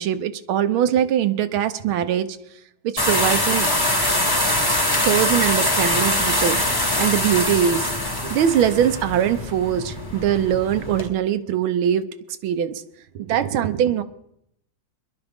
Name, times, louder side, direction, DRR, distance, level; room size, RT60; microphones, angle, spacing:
voice 1, 0.0-2.3 3.0-3.7 5.0-6.6 7.0-7.9 8.2-12.0 12.4-12.8 13.1-14.0, right 10 dB, 80° right, 11 dB, 1.5 m, -21 dB
sound 1, 3.0-11.1, left 1 dB, 15° left, 1.0 m, -23 dB
22.5 x 11.5 x 3.5 m, 0.76 s
omnidirectional pair, 2.2 m